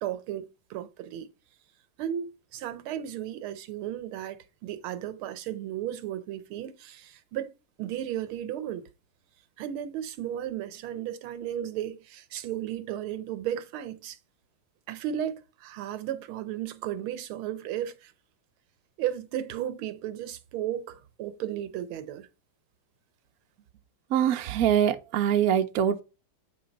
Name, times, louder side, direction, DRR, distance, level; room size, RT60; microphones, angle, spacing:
voice 1, 0.0-1.3 2.0-4.4 4.6-7.5 7.8-8.8 9.6-14.2 14.9-18.1 19.0-22.3, right 11 dB, 85° right, 1.7 m, -34 dB
voice 2, 24.1-26.0, right 9 dB, 65° right, 0.9 m, -24 dB
8.7 x 3.3 x 5.2 m
omnidirectional pair, 2.3 m